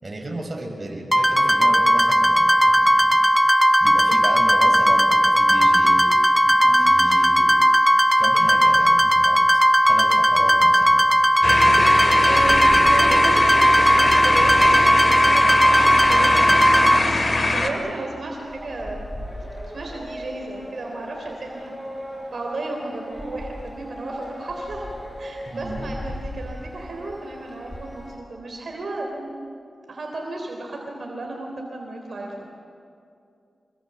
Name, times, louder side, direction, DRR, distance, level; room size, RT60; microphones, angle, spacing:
voice 1, 0.0-3.2 3.8-6.1 6.5-7.6 8.2-11.1 25.5-25.9, right 1 dB, 40° right, 1 dB, 5.7 m, -34 dB
sound 1, 1.1-17.0, equal, 5° right, 0.5 m, -17 dB
voice 2, 6.6-7.0 12.2-19.1 19.7-21.7 22.3-24.9 25.2-29.5 29.9-32.6, right 2 dB, 65° right, 0 dB, 3.6 m, -33 dB
sound 2, 11.4-17.7, left 2 dB, 45° left, 2.9 m, -22 dB
sound 3, 18.3-28.2, equal, 15° left, 6.6 m, -37 dB
26.0 x 23.0 x 7.6 m, 2.5 s
cardioid pair, 60°, 0 cm